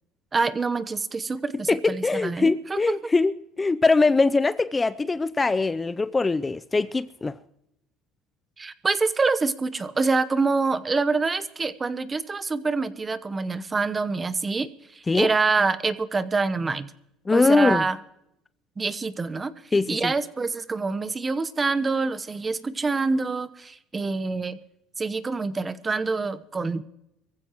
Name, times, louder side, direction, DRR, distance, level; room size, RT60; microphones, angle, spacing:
voice 1, 0.3-2.9 8.6-16.9 17.3-18.0 18.8-19.5 19.9-24.6 25.0-26.8, right 4 dB, 20° right, 1.0 m, -26 dB
voice 2, 1.7-7.3 15.1-15.3 17.3-17.8 19.7-20.1, left 3 dB, 20° left, 0.5 m, -22 dB
24.0 x 15.0 x 3.0 m
supercardioid pair, 105°, 0 cm